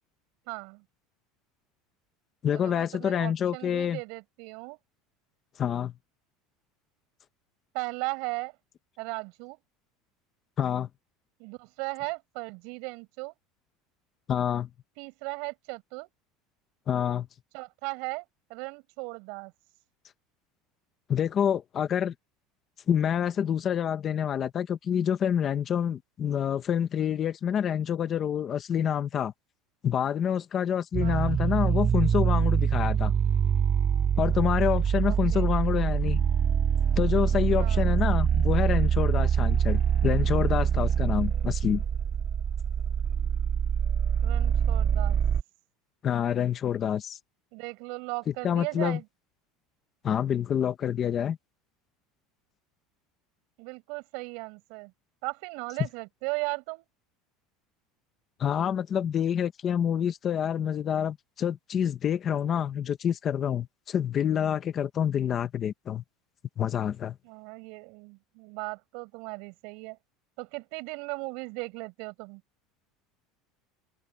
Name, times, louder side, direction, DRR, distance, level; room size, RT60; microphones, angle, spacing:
voice 1, 0.5-0.8 2.5-4.8 7.7-8.5 9.0-9.6 11.4-13.3 15.0-16.1 17.5-19.5 31.0-31.4 35.0-35.5 37.6-38.0 44.2-45.2 47.5-49.0 53.6-54.9 55.2-56.9 67.2-70.0 70.4-72.4, right 30 dB, 55° right, 5.7 m, -37 dB
voice 2, 2.4-4.0 5.6-5.9 10.6-10.9 14.3-14.7 16.9-17.3 21.1-22.1 22.9-29.3 29.8-33.1 34.2-36.2 37.0-41.8 46.0-47.2 48.4-49.0 50.0-51.4 58.4-66.0 66.6-67.2, left 8 dB, 25° left, 1.0 m, -27 dB
sound 1, 30.9-45.4, right 8 dB, 20° right, 0.4 m, -25 dB
open air
cardioid pair, 175°, 0 cm